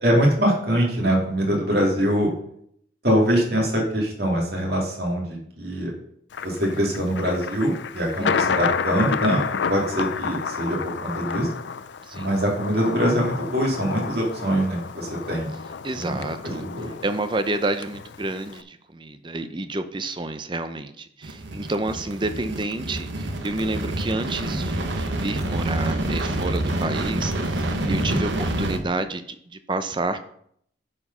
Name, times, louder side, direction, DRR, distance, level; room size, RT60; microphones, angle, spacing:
voice 1, 0.0-2.3 3.0-5.9 6.4-9.4 9.7-11.5 12.1-15.5 15.9-16.2 16.4-16.9 27.8-28.2, equal, 55° right, -2 dB, 2.8 m, -23 dB
Thunder, 6.3-18.6, left 6 dB, 75° left, 0.5 m, -30 dB
voice 2, 8.2-8.6 12.1-12.4 15.8-16.6 17.0-30.2, right 2 dB, 25° right, 10 dB, 0.6 m, -29 dB
sound 1, 21.2-28.8, right 1 dB, 80° right, 1.2 m, -27 dB
9.8 x 4.8 x 5.5 m, 0.68 s
head